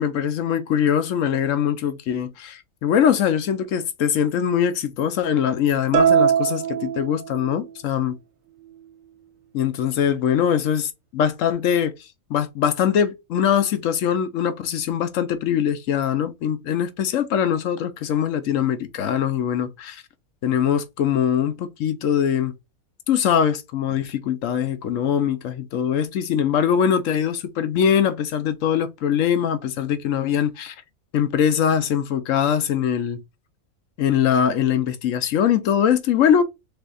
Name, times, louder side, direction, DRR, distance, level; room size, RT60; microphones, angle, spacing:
voice 1, 0.0-8.2 9.5-11.9 12.3-20.0 20.4-22.5 23.1-30.8 31.1-33.2 34.0-36.4, left 8 dB, 65° left, 1.0 m, -22 dB
sound 1, 5.9-7.7, right 8 dB, 70° right, 1.0 m, -21 dB
3.6 x 3.4 x 3.8 m
omnidirectional pair, 1.5 m